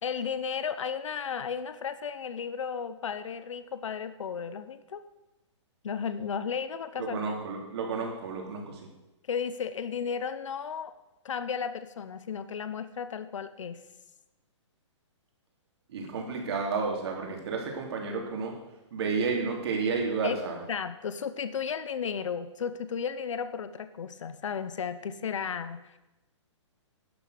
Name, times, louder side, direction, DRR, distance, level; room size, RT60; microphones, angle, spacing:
voice 1, 0.0-5.0 5.8-7.2 9.3-10.9 11.2-13.8 20.2-20.4 20.7-26.0, left 6 dB, 75° left, 12 dB, 0.9 m, -34 dB
voice 2, 7.0-8.8 15.9-18.5 18.9-20.6, right 4 dB, 55° right, 1 dB, 3.2 m, -31 dB
11.5 x 6.8 x 6.5 m, 1.0 s
hypercardioid pair, 150°, 16 cm